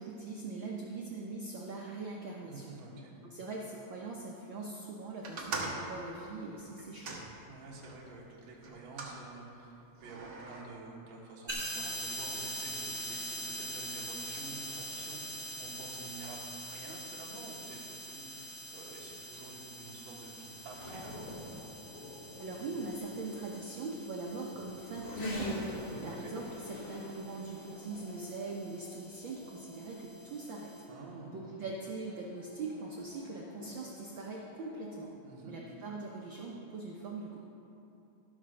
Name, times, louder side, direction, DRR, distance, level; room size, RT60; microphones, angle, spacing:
voice 1, 0.0-2.7 3.2-7.2 22.4-25.7 26.0-30.7 31.3-35.1 35.5-37.4, right 3 dB, 85° right, -2 dB, 1.0 m, -42 dB
voice 2, 2.5-3.1 7.5-9.7 10.0-21.4 25.7-26.4 30.9-31.4 35.2-35.6, right 3 dB, 65° right, -4 dB, 2.7 m, -49 dB
sound 1, 5.2-8.0 8.6-9.2 10.0-10.6, right 3 dB, 50° right, 1.5 m, -41 dB
sound 2, 11.5-30.8, equal, 15° right, 2.3 m, -44 dB
Race car auto racing / Accelerating revving vroom, 18.8-35.0, left 1 dB, 50° left, 3.0 m, -46 dB
14.5 x 5.1 x 6.4 m, 3.0 s
omnidirectional pair, 3.5 m